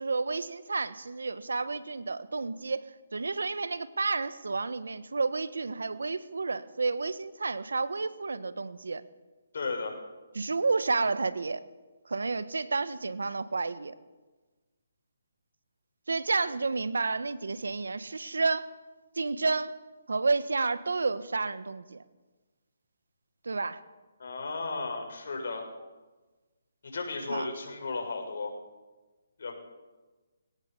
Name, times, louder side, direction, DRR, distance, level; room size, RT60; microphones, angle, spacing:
voice 1, 0.0-2.8 3.1-9.0 10.3-11.6 12.0-13.9 16.1-18.7 19.1-19.7 20.1-22.0 23.4-23.8 27.3-27.5, right 3 dB, 85° right, 14 dB, 1.4 m, -30 dB
voice 2, 9.5-9.9 24.2-25.6 26.8-28.5 29.4-29.5, left 3 dB, 65° left, 2 dB, 6.5 m, -34 dB
21.5 x 17.5 x 7.2 m, 1.2 s
hypercardioid pair, 155°, 0 cm